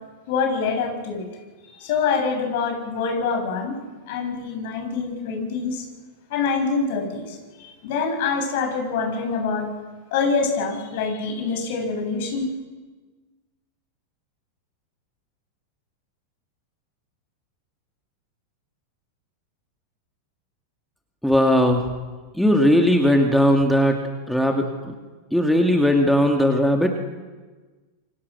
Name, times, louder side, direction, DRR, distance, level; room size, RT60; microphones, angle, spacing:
voice 1, 0.3-1.2 1.8-3.8 4.1-5.8 6.3-9.7 10.1-12.5, left 5 dB, 50° left, 3 dB, 7.7 m, -25 dB
voice 2, 21.2-21.9 22.4-24.0 24.3-24.9 25.3-26.9, equal, ahead, 3 dB, 2.6 m, -18 dB
28.0 x 25.0 x 6.4 m, 1.3 s
figure-of-eight pair, 90°, 0 cm